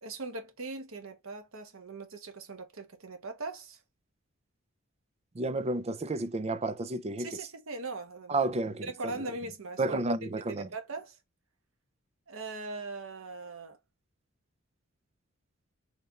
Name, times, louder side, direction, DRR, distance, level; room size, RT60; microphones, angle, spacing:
voice 1, 0.0-3.8 7.2-8.5 8.8-11.2 12.3-13.8, right 3 dB, 85° right, 1.2 m, -40 dB
voice 2, 5.4-7.3 8.3-9.1 9.8-10.7, right 2 dB, 30° right, 0.5 m, -31 dB
4.3 x 3.3 x 3.6 m
head